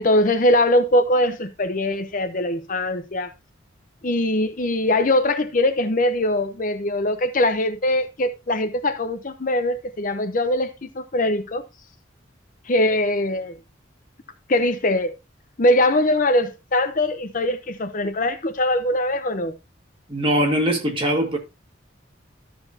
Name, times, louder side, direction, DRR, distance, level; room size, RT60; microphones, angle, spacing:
voice 1, 0.0-3.3 4.0-11.6 12.7-13.6 14.5-15.2 15.6-19.5, left 1 dB, 45° left, 0.7 m, -22 dB
voice 2, 20.1-21.4, equal, 25° right, 2.0 m, -21 dB
13.0 x 6.9 x 2.8 m
head